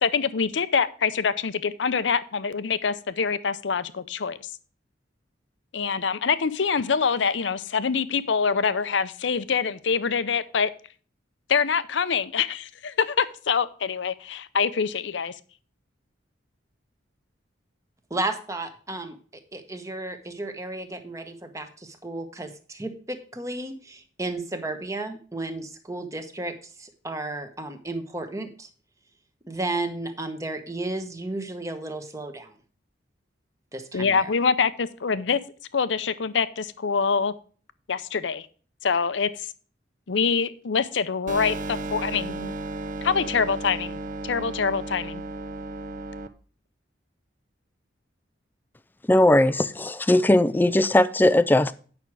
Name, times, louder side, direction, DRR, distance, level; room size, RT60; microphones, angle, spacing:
voice 1, 0.0-4.4 5.7-10.7 11.5-15.3 33.9-35.4 35.7-37.3 37.9-38.5 38.8-39.5 40.1-42.5 43.0-45.2, left 5 dB, 70° left, 0.6 m, -25 dB
voice 2, 18.1-28.7 29.4-32.5 33.7-34.3, right 2 dB, 15° right, 1.1 m, -33 dB
sound 1, 41.3-46.3, right 2 dB, 45° right, 0.7 m, -34 dB
voice 3, 49.1-51.7, left 1 dB, 10° left, 0.4 m, -19 dB
9.2 x 6.1 x 4.6 m
head